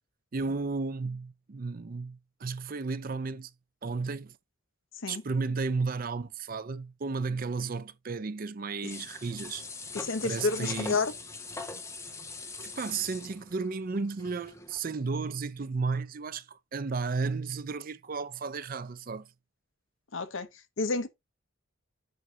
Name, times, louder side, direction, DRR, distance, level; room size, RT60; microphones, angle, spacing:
voice 1, 0.3-3.5 3.8-4.4 5.1-9.6 10.2-11.0 12.6-19.3, right 4 dB, 40° right, 0.5 m, -33 dB
sound 1, 8.8-14.9 15.2-15.3, left 3 dB, 15° left, 0.8 m, -42 dB
voice 2, 9.9-11.1 20.1-20.5 20.8-21.1, left 3 dB, 65° left, 0.9 m, -29 dB
7.8 x 2.7 x 5.8 m
head